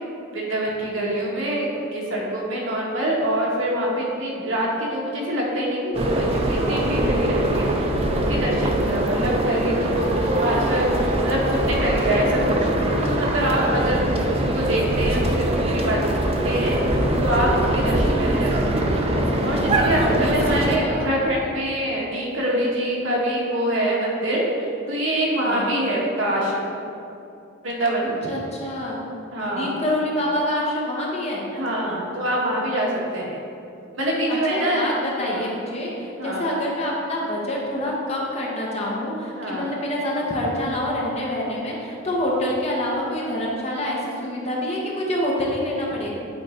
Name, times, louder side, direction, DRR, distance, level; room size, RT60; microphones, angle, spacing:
voice 1, 0.3-10.9 11.2-14.1 14.5-16.8 17.2-18.8 19.4-26.7 27.6-28.3 29.3-29.7 31.5-33.4 33.9-34.9 35.3-35.5 36.2-36.5 39.4-39.7, right 1 dB, 70° right, -4 dB, 1.6 m, -25 dB
sound 1, 5.9-20.8, right 1 dB, 30° right, 0.5 m, -22 dB
voice 2, 20.2-21.1 25.4-25.7 28.0-29.0 29.5-31.4 34.3-46.1, left 1 dB, 30° left, -4 dB, 1.2 m, -26 dB
8.8 x 4.1 x 4.5 m, 2.8 s
head